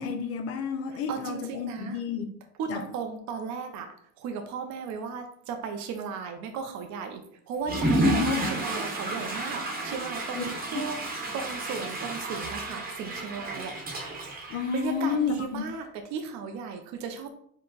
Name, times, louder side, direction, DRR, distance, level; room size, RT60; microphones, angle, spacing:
voice 1, 0.0-2.3 2.7-2.9 8.0-8.5 10.3-10.4 10.7-10.9 14.5-15.7, left 6 dB, 40° left, 0.7 m, -30 dB
voice 2, 1.1-2.0 2.6-3.9 4.2-7.2 7.5-9.6 9.8-11.0 11.3-13.7 14.7-15.8 16.1-17.3, right 6 dB, 45° right, 0.7 m, -35 dB
Water / Toilet flush, 7.6-15.3, right 1 dB, 25° right, 1.1 m, -31 dB
4.6 x 2.3 x 3.9 m
supercardioid pair, 125°, 38 cm